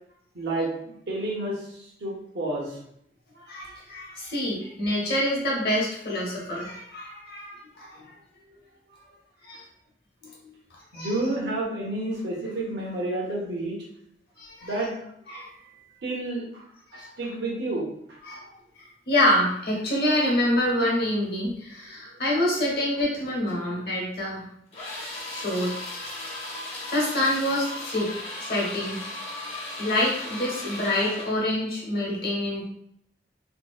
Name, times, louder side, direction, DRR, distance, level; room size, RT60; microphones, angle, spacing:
voice 1, 0.3-0.7 1.1-2.8 10.9-13.8 14.6-14.9 16.0-16.6 16.9-17.9, right 2 dB, 70° right, -2 dB, 0.7 m, -30 dB
voice 2, 3.4-8.1 9.4-9.6 10.2-10.5 10.9-11.1 14.4-14.8 15.3-15.5 16.9-17.1 18.2-18.4 19.1-24.4 25.3-25.8 26.9-28.1 28.4-29.0 29.8-32.7, left 1 dB, 60° left, -3 dB, 0.9 m, -26 dB
sound 1, 24.7-31.4, left 2 dB, 35° left, 0.5 m, -36 dB
2.7 x 2.1 x 2.4 m, 0.70 s
head